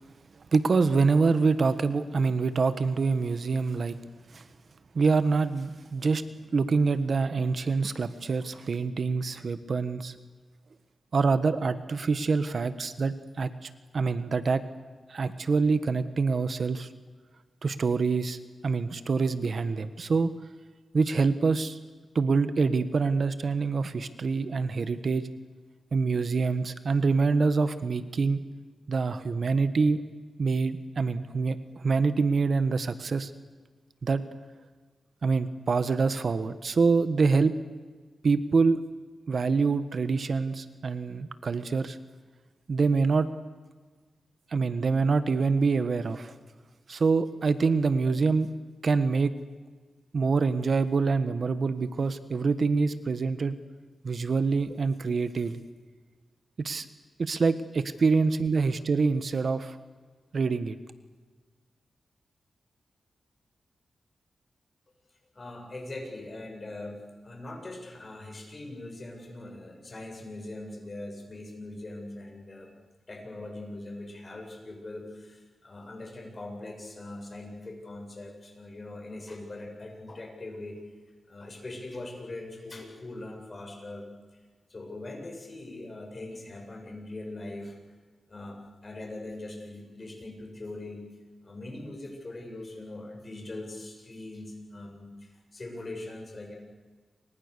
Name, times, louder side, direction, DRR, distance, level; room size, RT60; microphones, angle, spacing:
voice 1, 0.5-4.0 4.3-4.4 4.9-6.2 6.5-10.1 11.1-14.6 15.1-16.9 17.6-18.4 18.6-20.3 20.9-21.8 22.1-25.2 25.9-28.4 28.9-30.0 30.4-33.3 34.0-34.2 35.2-37.5 38.2-38.8 39.3-42.0 42.7-43.3 44.5-46.3 46.9-48.5 48.8-49.3 50.1-53.5 54.0-55.6 56.6-56.8 57.2-59.8 60.3-60.8, right 4 dB, 55° right, 12 dB, 1.3 m, -25 dB
voice 2, 65.3-72.8 73.1-80.8 81.3-84.1 84.3-84.4 84.7-87.8 88.3-91.1 91.4-96.5, left 2 dB, 35° left, 1 dB, 7.8 m, -41 dB
29.0 x 25.5 x 6.9 m, 1.4 s
wide cardioid pair, 95°, 0 cm